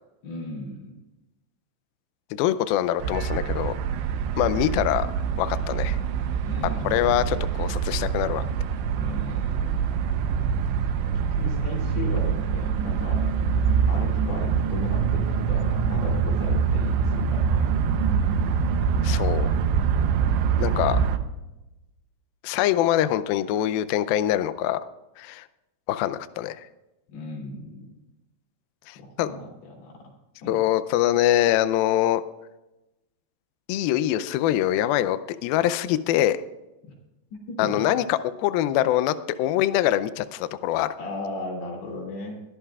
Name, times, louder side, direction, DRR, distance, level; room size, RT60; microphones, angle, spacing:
voice 1, 0.2-1.0 6.4-7.2 9.0-9.9 11.1-13.3 13.9-17.8 27.1-27.9 28.9-30.1 30.4-30.6 36.8-36.9 37.3-37.9 41.0-42.4, left 2 dB, 70° left, -2 dB, 5.0 m, -36 dB
voice 2, 2.3-3.7 4.4-5.1 5.4-6.0 6.8-8.4 19.0-19.5 20.6-21.0 22.4-24.8 25.2-25.5 25.9-26.6 28.9-29.3 30.5-32.2 33.7-36.4 37.6-40.9, left 12 dB, 90° left, 12 dB, 2.1 m, -24 dB
sound 1, 3.0-21.2, right 6 dB, 85° right, 3.1 m, -24 dB
21.5 x 13.5 x 2.4 m, 0.99 s
omnidirectional pair, 5.0 m